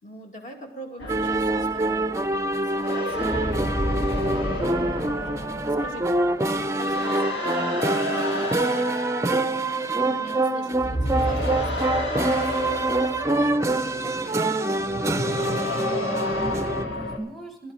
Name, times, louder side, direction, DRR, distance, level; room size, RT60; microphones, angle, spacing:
voice 1, 0.0-9.0 9.9-14.7, right 1 dB, 45° left, 2 dB, 2.2 m, -43 dB
sound 1, 1.0-10.4 10.7-17.2, left 1 dB, 75° left, 2.3 m, -31 dB
sound 2, 1.1-16.9, right 2 dB, 15° right, 0.5 m, -25 dB
voice 2, 15.7-17.7, right 1 dB, ahead, 3 dB, 1.0 m, -38 dB
14.5 x 11.0 x 5.0 m, 0.87 s
head